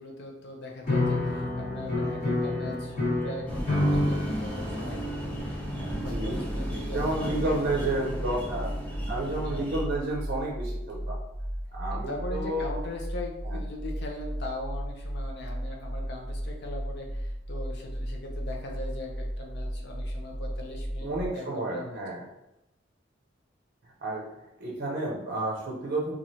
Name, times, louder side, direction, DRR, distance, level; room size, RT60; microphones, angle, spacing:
voice 1, 0.0-7.4 9.4-9.6 11.9-22.0, left 2 dB, 60° left, 0 dB, 0.5 m, -40 dB
sound 1, 0.8-9.2, left 1 dB, 40° left, 1.1 m, -30 dB
sound 2, 3.5-9.8, equal, 5° left, 0.5 m, -37 dB
voice 2, 5.9-6.4 6.9-8.7 9.1-11.2 11.7-12.7 13.4-13.6 21.0-22.2 24.0-24.3 24.6-26.2, right 2 dB, 50° right, -2 dB, 0.5 m, -31 dB
sound 3, 6.0-21.3, equal, 85° left, 1.2 m, -35 dB
3.0 x 2.4 x 2.7 m, 0.91 s
head